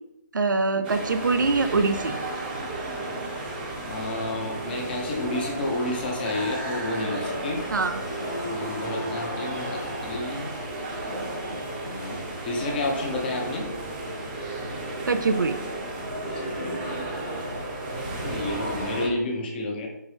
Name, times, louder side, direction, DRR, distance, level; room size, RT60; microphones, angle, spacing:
voice 1, 0.3-2.2 7.7-8.0 15.1-15.6, right 4 dB, 75° right, 9 dB, 0.4 m, -23 dB
sound 1, 0.8-19.1, right 1 dB, 30° right, 0.8 m, -33 dB
voice 2, 3.9-7.6 8.5-10.5 11.8-13.7 16.2-16.9 18.1-19.9, left 2 dB, 30° left, 0 dB, 0.8 m, -30 dB
Harp, 7.4-12.9, left 3 dB, 65° left, 0.7 m, -42 dB
4.3 x 3.0 x 3.3 m, 0.83 s
figure-of-eight pair, 155°, 10 cm